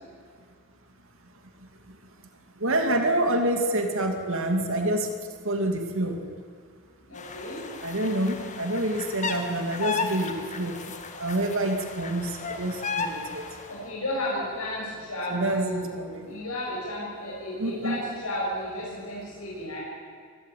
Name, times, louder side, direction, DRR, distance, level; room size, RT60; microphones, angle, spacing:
voice 1, 2.6-5.1 5.4-6.2 7.8-10.8 11.2-13.4 15.3-16.3 17.6-18.0, right 1 dB, 65° right, 4 dB, 2.5 m, -27 dB
voice 2, 7.0-7.6 13.6-15.9 16.2-19.8, left 1 dB, 75° left, -5 dB, 7.0 m, -33 dB
sound 1, 7.2-13.8, left 4 dB, 35° left, 1.9 m, -35 dB
24.0 x 15.0 x 9.3 m, 2.1 s
head